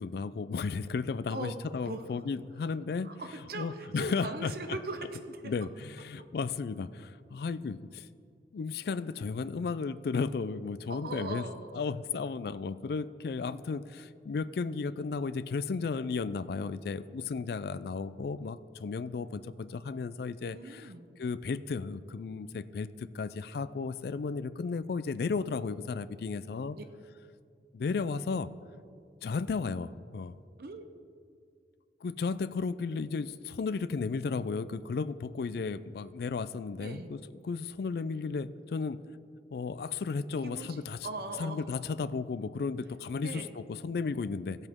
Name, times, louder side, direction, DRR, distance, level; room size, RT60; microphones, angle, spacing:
voice 1, 0.0-3.1 3.5-4.5 5.4-8.1 8.5-11.4 11.7-20.9 21.2-26.8 27.7-28.5 29.2-30.4 32.0-39.0 39.5-41.1 41.4-44.7, left 4 dB, 60° left, 16 dB, 0.3 m, -34 dB
voice 2, 3.0-5.5 10.9-11.8 20.5-21.1 26.7-26.8 30.6-30.8 36.8-37.1 40.4-41.6 43.2-43.5, right 2 dB, 55° right, 7 dB, 0.8 m, -40 dB
15.5 x 8.0 x 3.6 m, 2.3 s
head